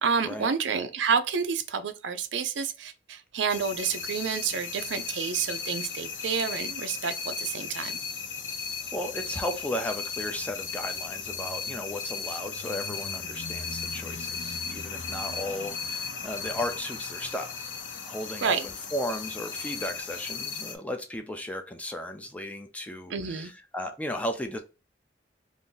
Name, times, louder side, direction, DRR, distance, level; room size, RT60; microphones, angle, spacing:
voice 1, 0.0-7.9 18.4-18.6 23.1-23.5, right 6 dB, 75° right, 0.5 m, -29 dB
sound 1, 3.5-20.7, left 5 dB, 75° left, 0.6 m, -36 dB
voice 2, 8.9-17.6 18.0-24.6, left 1 dB, 10° left, 0.4 m, -35 dB
2.7 x 2.6 x 3.7 m
head